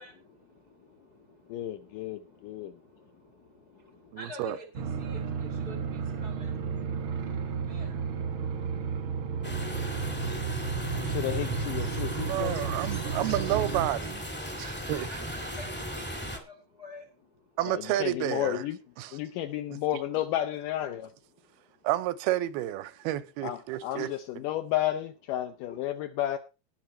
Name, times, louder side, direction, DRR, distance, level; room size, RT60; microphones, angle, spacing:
voice 1, 0.0-9.7 13.7-13.8 14.5-17.6 21.4-21.8, left 1 dB, 60° left, 1.0 m, -50 dB
voice 2, 1.5-2.7 11.0-12.7 17.7-18.8 19.1-21.1 23.4-26.4, left 12 dB, 80° left, 1.9 m, -32 dB
voice 3, 4.1-4.6 12.2-14.2 14.6-15.1 17.6-18.6 19.0-19.2 19.7-19.8 21.8-24.1, right 14 dB, 85° right, 2.6 m, -30 dB
sound 1, 4.7-13.9, right 6 dB, 65° right, 1.2 m, -33 dB
sound 2, 9.4-16.4, equal, 10° left, 0.4 m, -36 dB
18.5 x 6.2 x 4.3 m
omnidirectional pair, 4.5 m